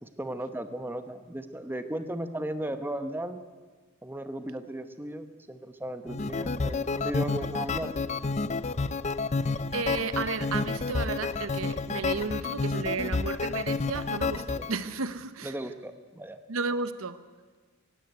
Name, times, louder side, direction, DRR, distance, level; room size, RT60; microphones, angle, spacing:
voice 1, 0.0-3.4 4.0-8.0 14.6-14.7 15.4-16.4, right 1 dB, 10° right, 9 dB, 1.0 m, -36 dB
sound 1, 6.1-14.7, left 4 dB, 35° left, 0.5 m, -30 dB
voice 2, 9.4-15.5 16.5-17.2, right 4 dB, 70° right, 13 dB, 0.9 m, -33 dB
17.5 x 16.0 x 9.4 m, 1.4 s
head